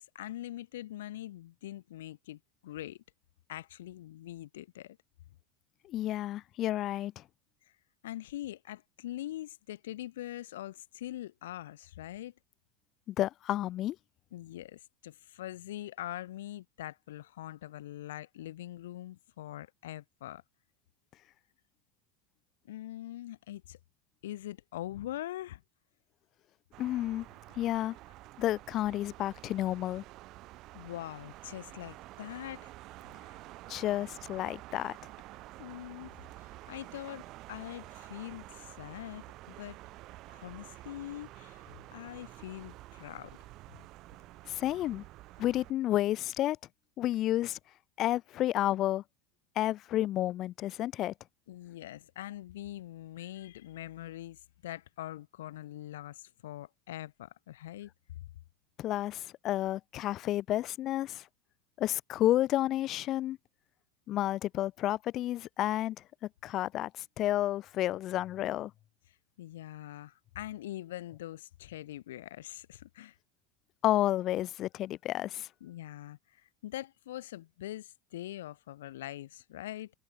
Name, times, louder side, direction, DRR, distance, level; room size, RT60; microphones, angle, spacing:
voice 1, 0.0-3.0 3.5-5.0 8.0-12.3 14.3-20.4 22.6-23.8 24.2-25.6 30.7-32.7 35.6-39.8 40.3-41.6 41.9-43.4 51.5-57.9 69.4-73.2 75.6-79.9, left 14 dB, 90° left, 5.7 m, -43 dB
voice 2, 5.8-7.2 13.1-14.0 26.8-27.3 27.6-28.0 28.4-30.0 33.7-35.0 44.5-45.0 45.4-46.6 47.0-47.6 48.0-49.0 49.6-51.1 58.8-61.3 61.8-63.4 64.1-66.0 66.4-68.7 73.8-75.5, left 14 dB, 45° left, 2.5 m, -31 dB
sound 1, 26.7-45.7, right 17 dB, 50° right, 7.1 m, -50 dB
supercardioid pair, 115°, 0 cm